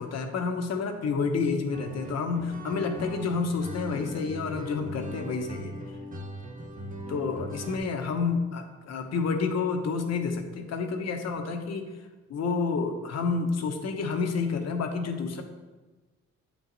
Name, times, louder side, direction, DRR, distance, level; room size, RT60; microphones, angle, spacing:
voice 1, 0.0-5.7 7.1-11.8 12.3-15.4, left 4 dB, 60° left, 5 dB, 1.0 m, -29 dB
sound 1, 1.7-7.8, equal, 25° right, 0.9 m, -39 dB
8.4 x 4.8 x 4.0 m, 1.2 s
cardioid pair, 90°, 30 cm